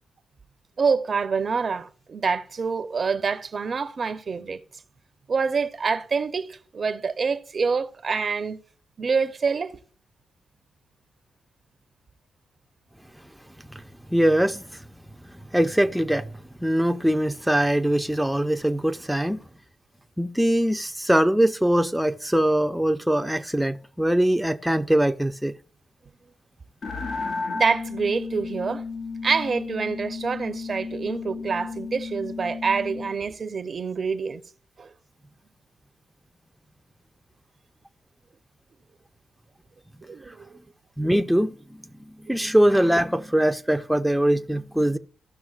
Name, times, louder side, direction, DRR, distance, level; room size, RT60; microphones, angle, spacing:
voice 1, 0.8-4.6 5.3-8.6 9.0-9.8 27.5-28.8 29.2-34.4 34.8-34.9 40.1-40.6, right 5 dB, 50° right, 0.7 m, -26 dB
voice 2, 14.1-14.8 15.5-16.3 16.6-19.4 20.2-25.5 41.0-41.6 42.3-45.0, right 1 dB, 5° right, 0.5 m, -22 dB
sound 1, 26.8-33.2, left 4 dB, 60° left, 0.7 m, -33 dB
15.5 x 5.8 x 2.4 m
cardioid pair, 60°, 0 cm